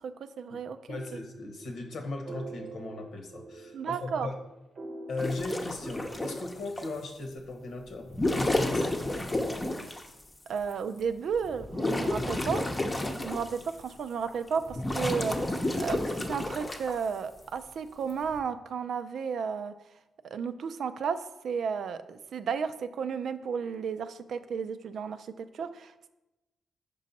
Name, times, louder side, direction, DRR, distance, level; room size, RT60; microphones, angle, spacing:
voice 1, 0.0-1.0 3.7-4.3 10.5-12.7 13.2-15.3 15.7-19.7 20.2-26.1, right 6 dB, 70° right, 10 dB, 0.4 m, -33 dB
voice 2, 0.9-4.3 5.1-8.1 8.3-9.0, left 2 dB, 75° left, 4 dB, 1.1 m, -37 dB
sound 1, 0.9-6.4, right 2 dB, 55° right, 0.8 m, -45 dB
sound 2, 5.2-6.9 8.0-10.1 10.7-10.8 11.3-13.8 14.3-16.9 18.1-18.4, left 1 dB, 20° left, 0.7 m, -31 dB
5.4 x 5.2 x 4.1 m, 1.0 s
cardioid pair, 80°, 0 cm